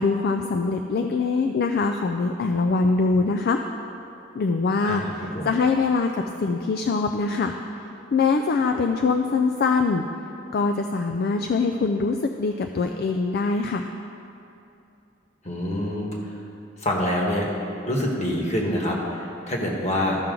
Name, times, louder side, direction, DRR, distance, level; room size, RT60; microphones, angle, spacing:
voice 1, 0.0-3.6 4.3-6.1 6.4-7.5 8.1-10.0 10.5-13.9, left 4 dB, 55° left, 5 dB, 0.4 m, -23 dB
voice 2, 15.4-16.1 16.8-17.5 17.9-20.2, left 1 dB, 35° left, -1 dB, 1.4 m, -26 dB
13.5 x 5.9 x 3.8 m, 2.7 s
head